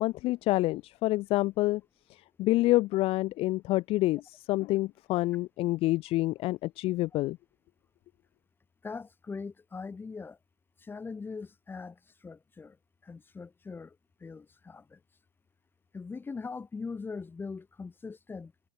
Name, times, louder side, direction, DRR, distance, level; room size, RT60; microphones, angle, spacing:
voice 1, 0.0-1.8 2.1-7.4, left 18 dB, 35° left, 1.4 m, -27 dB
voice 2, 8.8-10.4 10.8-12.8 13.0-14.0 14.2-15.0 15.9-18.5, left 4 dB, 15° left, 7.4 m, -41 dB
hypercardioid pair, 115°, 16 cm